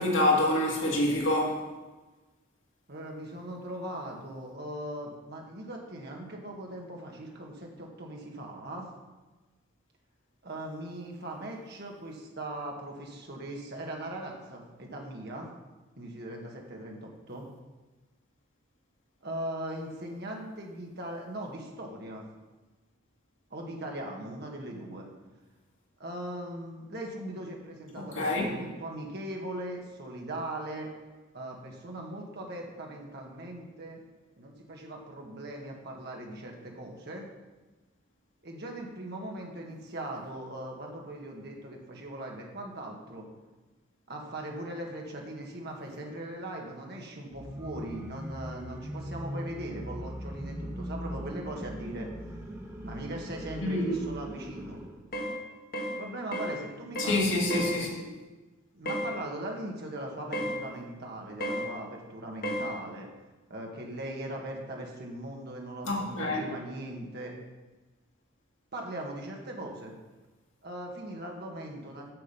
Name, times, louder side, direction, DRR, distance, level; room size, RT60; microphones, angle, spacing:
voice 1, 0.0-1.6 28.0-28.4 53.6-54.0 57.0-57.9 65.8-66.5, left 1 dB, 80° left, -2 dB, 2.2 m, -27 dB
voice 2, 2.9-8.9 10.4-15.5 16.0-17.5 19.2-22.3 23.5-25.1 26.0-30.9 31.3-34.0 34.4-37.3 38.4-43.3 44.1-52.1 52.8-54.8 56.0-57.6 58.7-63.1 63.5-67.3 68.7-69.9 70.6-72.1, right 1 dB, 55° right, 0 dB, 1.8 m, -39 dB
sound 1, 47.3-55.0, equal, 15° right, 1.2 m, -40 dB
sound 2, 55.1-55.4 55.7-56.0 56.3-56.6 57.0-57.2 57.5-57.8 58.9-59.1 60.3-60.6 61.4-61.7 62.4-62.7, equal, 50° left, 1.4 m, -32 dB
7.6 x 7.3 x 5.7 m, 1.2 s
head